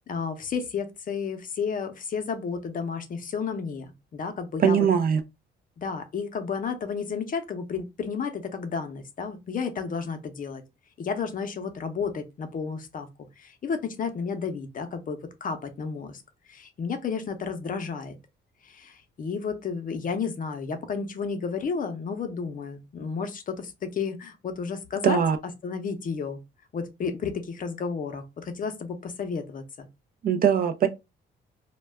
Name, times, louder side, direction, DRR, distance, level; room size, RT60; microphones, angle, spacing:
voice 1, 0.1-4.8 5.8-10.6 11.0-13.1 13.4-16.2 16.5-18.2 18.6-25.2 25.6-26.4 26.7-29.9, left 5 dB, 45° left, 0.6 m, -32 dB
voice 2, 4.6-5.2 25.0-25.4 30.2-30.9, right 8 dB, 45° right, 0.4 m, -21 dB
2.2 x 2.1 x 3.2 m
cardioid pair, 90°, 20 cm